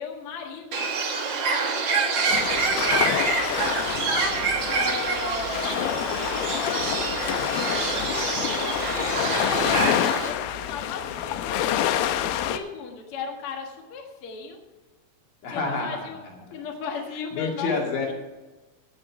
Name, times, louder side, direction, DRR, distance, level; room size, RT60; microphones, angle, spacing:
voice 1, 0.0-7.8 8.1-8.5 8.9-11.6 12.4-14.6 15.5-16.2 16.5-17.7 18.1-18.2, left 5 dB, 50° left, 2 dB, 1.9 m, -37 dB
Bird, 0.7-10.3, right 4 dB, 65° right, 1.1 m, -26 dB
sound 1, 2.3-12.6, left 11 dB, 85° left, 2.5 m, -27 dB
voice 2, 15.4-16.6 17.3-18.1, left 4 dB, 70° left, -1 dB, 4.0 m, -29 dB
16.5 x 6.6 x 4.9 m, 1.2 s
omnidirectional pair, 4.2 m